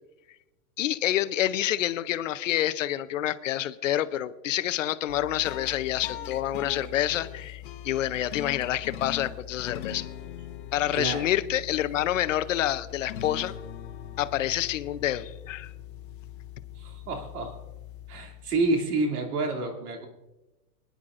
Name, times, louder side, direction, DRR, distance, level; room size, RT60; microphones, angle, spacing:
voice 1, 0.8-10.1 10.7-13.5 14.2-15.7, left 12 dB, 55° left, 14 dB, 0.6 m, -28 dB
sound 1, 5.1-18.7, left 11 dB, 35° left, 0.9 m, -41 dB
voice 2, 10.9-11.3 16.8-17.6 18.1-20.1, right 2 dB, 75° right, 3 dB, 2.6 m, -29 dB
25.5 x 10.5 x 2.5 m, 1.0 s
supercardioid pair, 175°, 46 cm